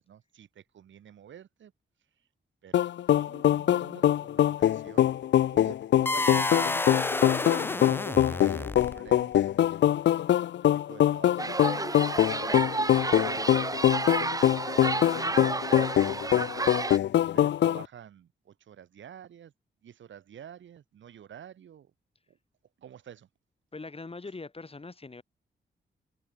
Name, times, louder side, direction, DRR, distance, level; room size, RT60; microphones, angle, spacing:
voice 1, 0.0-1.7 2.6-5.1 5.5-7.1 7.6-9.3 10.0-10.3 10.6-11.5 11.9-14.1 14.8-16.8 17.2-19.5 19.8-21.9 22.3-22.4 22.8-23.3, right 9 dB, 85° right, 3.8 m, -49 dB
sound 1, 2.7-17.8, left 11 dB, 70° left, 0.5 m, -24 dB
sound 2, 6.1-9.2, left 2 dB, 10° left, 0.3 m, -30 dB
sound 3, 11.4-17.0, right 3 dB, 20° right, 0.7 m, -31 dB
voice 2, 23.7-25.2, left 3 dB, 30° left, 4.8 m, -42 dB
cardioid pair, 80°, 19 cm